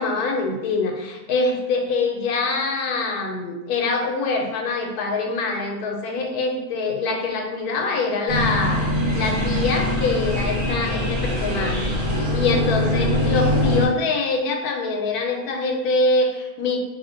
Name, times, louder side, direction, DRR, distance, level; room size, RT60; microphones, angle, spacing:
voice 1, 0.0-8.8 9.1-11.9 12.3-16.8, left 3 dB, 90° left, 2 dB, 1.1 m, -24 dB
sound 1, 8.3-13.9, left 1 dB, 60° right, 1.3 m, -22 dB
2.7 x 2.1 x 3.8 m, 1.0 s
omnidirectional pair, 1.6 m